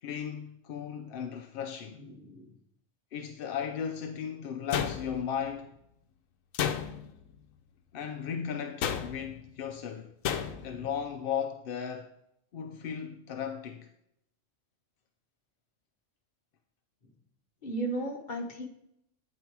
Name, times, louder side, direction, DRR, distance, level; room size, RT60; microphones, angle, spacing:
voice 1, 0.0-2.0 3.1-5.7 7.9-10.1 10.6-12.1 12.5-13.9, left 8 dB, 60° left, 0.6 m, -36 dB
voice 2, 1.9-2.5 10.5-10.9 17.6-18.7, right 2 dB, 40° left, 1.2 m, -36 dB
sound 1, 4.7-5.4 6.5-7.2 8.8-9.4 10.2-10.8, left 8 dB, 80° left, 1.0 m, -32 dB
8.7 x 4.2 x 4.6 m
omnidirectional pair, 1.4 m